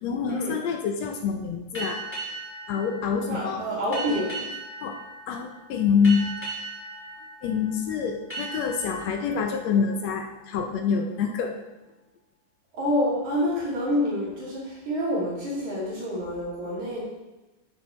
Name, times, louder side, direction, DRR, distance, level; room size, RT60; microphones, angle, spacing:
voice 1, 0.0-2.0 2.7-3.6 4.8-4.9 5.3-6.2 7.4-11.5, left 6 dB, 70° left, 4 dB, 1.7 m, -26 dB
sound 1, 1.7-11.0, right 2 dB, 5° left, 3.0 m, -39 dB
voice 2, 3.3-4.5 12.7-17.0, equal, 65° right, -7 dB, 4.0 m, -27 dB
13.5 x 7.1 x 3.2 m, 1.1 s
omnidirectional pair, 3.7 m